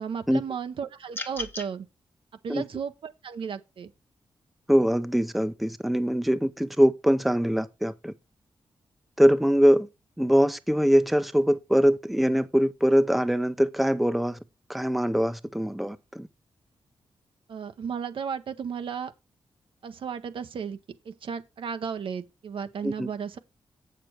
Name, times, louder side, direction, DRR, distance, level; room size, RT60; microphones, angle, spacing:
voice 1, 0.0-1.9 2.4-3.9 17.5-19.1 19.8-20.8 21.0-23.4, right 6 dB, 75° right, 0.8 m, -34 dB
sound 1, 1.1-1.7, left 2 dB, 25° left, 1.0 m, -35 dB
voice 2, 4.7-8.1 9.2-9.9 10.2-14.4 14.7-16.3 22.8-23.1, equal, ahead, 0.6 m, -23 dB
7.6 x 6.7 x 4.6 m
cardioid pair, 75°, 9 cm